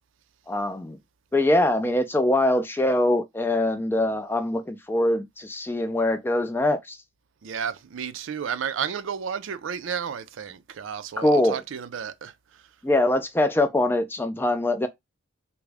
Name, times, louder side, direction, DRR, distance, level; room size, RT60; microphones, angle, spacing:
voice 1, 0.5-1.0 1.3-7.0 11.2-11.6 12.8-14.9, left 1 dB, 10° left, 0.3 m, -23 dB
voice 2, 7.4-12.7, right 7 dB, 75° right, 0.4 m, -32 dB
3.5 x 2.0 x 3.3 m
head